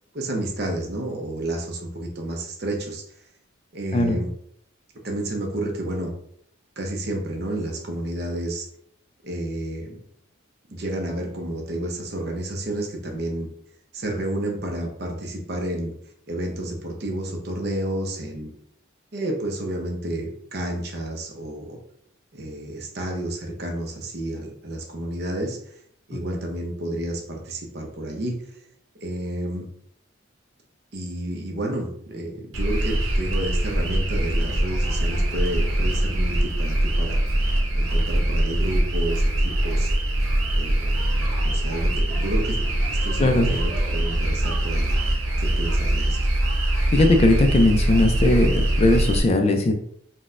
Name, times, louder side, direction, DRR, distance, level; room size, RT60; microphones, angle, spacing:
voice 1, 0.1-3.0 3.7-4.3 5.0-6.1 6.8-8.7 9.2-10.0 10.7-13.5 13.9-15.9 16.3-18.5 19.1-21.8 22.3-25.8 26.1-28.6 29.0-29.7 30.9-37.2 37.7-39.9 40.5-41.0 41.4-42.6 42.9-45.0 45.4-46.2, right 1 dB, 50° right, 2 dB, 0.6 m, -30 dB
sound 1, 32.5-49.2, right 1 dB, 85° right, 0.8 m, -23 dB
voice 2, 46.9-49.7, left 2 dB, 30° left, 4 dB, 0.3 m, -19 dB
3.9 x 2.1 x 2.4 m, 0.66 s
head